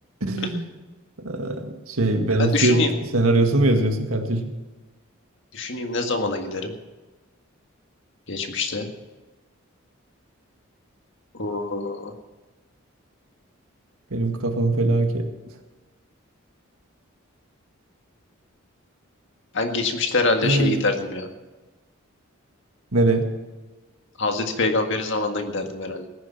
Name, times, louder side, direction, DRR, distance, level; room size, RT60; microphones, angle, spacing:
voice 1, 0.2-0.6 1.2-2.8 3.1-4.5 14.1-15.3 20.4-20.9 22.9-23.3, right 2 dB, 90° right, 4 dB, 1.9 m, -21 dB
voice 2, 2.4-2.9 5.5-6.7 8.3-8.9 11.3-12.1 19.5-21.3 24.2-26.1, left 3 dB, 60° left, 5 dB, 1.8 m, -25 dB
18.0 x 10.5 x 5.9 m, 1.2 s
head